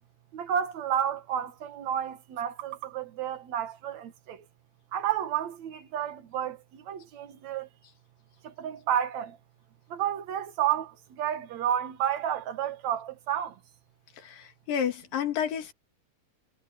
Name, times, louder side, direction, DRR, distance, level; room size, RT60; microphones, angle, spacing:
voice 1, 0.3-4.4 4.9-6.6 6.9-7.7 8.4-9.4 9.9-13.5, right 10 dB, 60° right, 2.6 m, -31 dB
voice 2, 14.2-15.7, left 8 dB, 75° left, 3.9 m, -30 dB
omnidirectional pair, 4.0 m